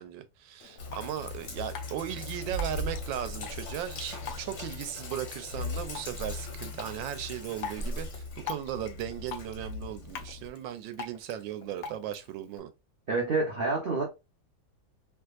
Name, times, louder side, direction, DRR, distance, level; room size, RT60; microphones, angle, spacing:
voice 1, 0.0-12.7, right 11 dB, 85° right, 1.3 m, -37 dB
Drip, 0.6-12.6, left 6 dB, 70° left, 0.8 m, -45 dB
Sink (filling or washing), 0.8-10.5, left 2 dB, 45° left, 1.1 m, -39 dB
voice 2, 13.1-14.0, right 3 dB, 60° right, 0.5 m, -28 dB
3.4 x 3.0 x 2.3 m
omnidirectional pair, 2.0 m